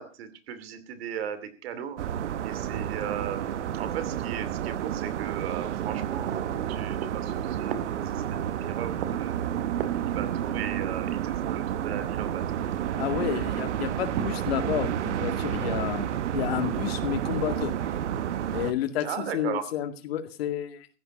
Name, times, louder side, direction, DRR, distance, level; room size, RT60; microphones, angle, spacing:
voice 1, 0.0-2.0 2.4-9.3 9.7-12.4 13.1-13.2 19.0-19.7, right 9 dB, 55° right, 11 dB, 2.6 m, -36 dB
sound 1, 2.0-18.7, right 10 dB, 75° right, 1.3 m, -30 dB
voice 2, 13.0-16.0 16.3-17.7 18.5-19.1 19.3-20.9, left 11 dB, 55° left, 9 dB, 2.2 m, -30 dB
15.5 x 10.5 x 5.3 m, 0.35 s
hypercardioid pair, 150°, 36 cm